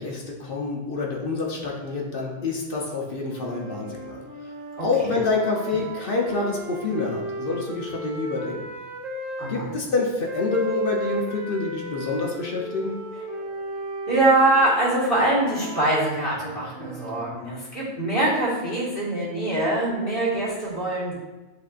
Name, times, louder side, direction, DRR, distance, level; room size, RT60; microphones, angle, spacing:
voice 1, 0.0-4.2 4.8-8.6 9.5-13.0, left 3 dB, 55° left, -1 dB, 0.6 m, -27 dB
sound 1, 3.3-9.5 10.2-17.3, equal, 65° right, 1.1 m, -35 dB
voice 2, 9.4-9.7 14.1-21.1, right 2 dB, 40° left, -7 dB, 1.6 m, -23 dB
7.8 x 2.6 x 2.4 m, 1.2 s
omnidirectional pair, 1.6 m